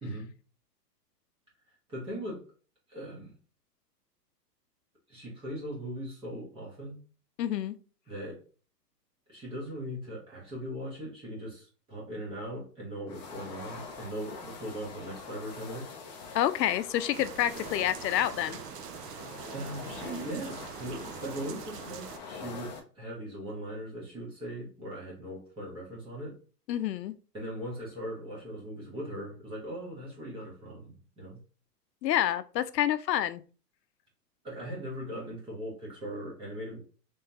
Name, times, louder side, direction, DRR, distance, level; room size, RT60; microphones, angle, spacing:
voice 1, 0.0-0.3 1.9-2.5 2.9-3.3 5.1-7.0 8.1-8.4 9.3-16.0 19.5-26.4 27.3-31.4 34.4-36.8, equal, 10° right, -4 dB, 1.0 m, -39 dB
voice 2, 7.4-7.7 16.3-18.6 26.7-27.1 32.0-33.4, left 12 dB, 85° left, 13 dB, 0.6 m, -28 dB
sound 1, 13.1-22.8, left 4 dB, 25° left, 0.5 m, -45 dB
sound 2, 17.1-22.2, right 10 dB, 70° right, 0.6 m, -44 dB
3.6 x 3.4 x 2.8 m, 0.37 s
hypercardioid pair, 155°, 49 cm